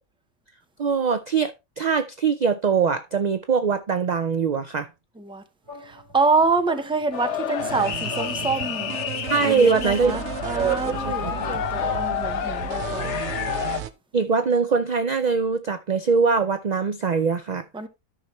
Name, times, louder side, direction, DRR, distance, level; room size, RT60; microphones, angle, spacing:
voice 1, 0.8-1.5 1.8-4.9 9.3-10.2 10.6-10.8 11.0-11.3 14.1-17.6, right 5 dB, 50° right, 0.5 m, -22 dB
sound 1, 5.6-9.1, left 3 dB, 20° right, 3.0 m, -42 dB
voice 2, 5.8-9.0 9.4-13.2 17.7-17.9, right 4 dB, 5° right, 0.6 m, -26 dB
sound 2, 7.1-13.8, left 9 dB, 70° left, 1.0 m, -29 dB
sound 3, 7.6-13.9, right 9 dB, 65° right, 0.9 m, -34 dB
12.5 x 5.7 x 3.1 m
omnidirectional pair, 1.3 m